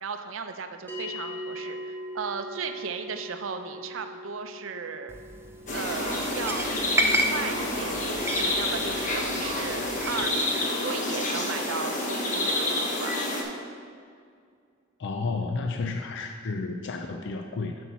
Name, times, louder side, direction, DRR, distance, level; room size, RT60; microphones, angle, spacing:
voice 1, 0.0-5.1 5.7-13.2, right 5 dB, 80° right, 7 dB, 0.6 m, -36 dB
sound 1, 0.9-11.4, left 1 dB, 10° left, 1.4 m, -43 dB
sound 2, 5.1-10.3, right 1 dB, 10° right, 0.5 m, -32 dB
sound 3, 5.7-13.4, left 1 dB, 40° left, 1.2 m, -28 dB
voice 2, 15.0-17.8, left 3 dB, 65° left, 4 dB, 0.5 m, -31 dB
8.3 x 4.4 x 5.8 m, 2.1 s
head